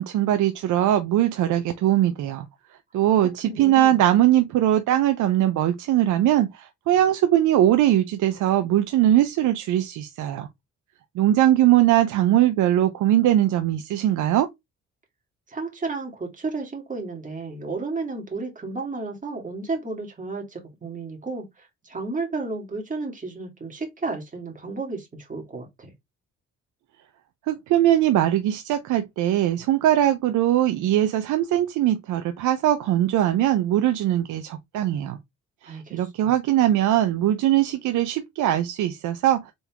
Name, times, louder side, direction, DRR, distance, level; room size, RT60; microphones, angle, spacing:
voice 1, 0.0-2.5 2.9-10.5 11.2-14.5 27.5-35.2 35.6-39.5, right 12 dB, 80° right, 0.6 m, -21 dB
voice 2, 3.2-4.0 15.5-25.9 35.6-36.3, right 3 dB, 25° right, 1.9 m, -33 dB
3.8 x 3.6 x 2.8 m
cardioid pair, 90°, 30 cm